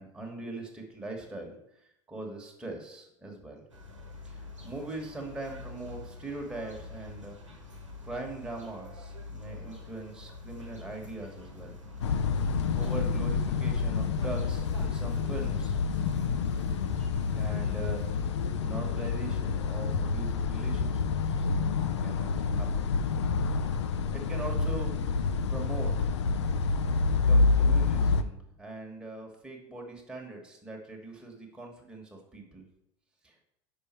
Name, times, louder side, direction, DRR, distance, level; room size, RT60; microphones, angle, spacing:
voice 1, 0.0-3.6 4.2-7.4 8.0-11.7 12.4-12.5 12.7-15.7 17.3-18.0 18.6-21.5 22.0-22.9 23.4-23.5 24.1-24.9 25.3-26.1 27.2-32.6 33.2-33.3, right 2 dB, 5° right, -1 dB, 1.4 m, -41 dB
sound 1, 3.7-18.6, left 3 dB, 85° right, 1.2 m, -46 dB
sound 2, 12.0-28.2, left 4 dB, 70° left, 0.5 m, -28 dB
5.7 x 5.4 x 4.3 m, 0.79 s
figure-of-eight pair, 80°, 16 cm